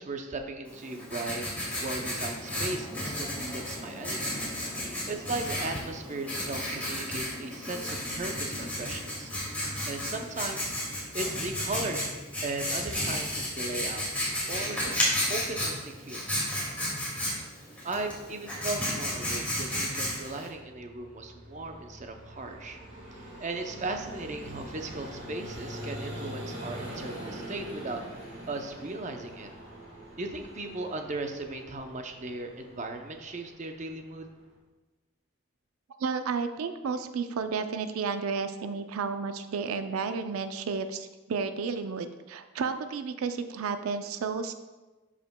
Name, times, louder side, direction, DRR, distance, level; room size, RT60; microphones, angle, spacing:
voice 1, 0.0-1.4 1.8-4.5 5.1-9.3 9.9-12.1 12.4-14.1 14.5-16.5 17.8-22.8 23.2-28.0 28.5-29.5 30.2-34.3, right 2 dB, 35° right, 5 dB, 0.6 m, -37 dB
Writing, 0.7-20.5, left 1 dB, 10° left, 2.0 m, -33 dB
Vehicle, 20.1-34.5, right 1 dB, 55° right, 2.0 m, -44 dB
voice 2, 36.0-44.5, right 5 dB, 90° right, 9 dB, 0.4 m, -32 dB
11.5 x 4.9 x 2.2 m, 1.2 s
head